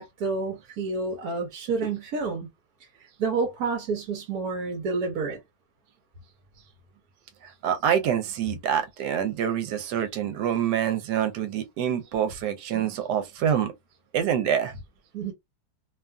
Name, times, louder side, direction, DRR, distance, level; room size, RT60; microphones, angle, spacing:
voice 1, 0.0-2.5 2.8-5.4 15.1-15.3, right 4 dB, 70° right, 1.1 m, -29 dB
voice 2, 7.4-13.7 14.1-14.7, right 9 dB, 85° right, 1.2 m, -26 dB
2.7 x 2.4 x 2.3 m
omnidirectional pair, 1.8 m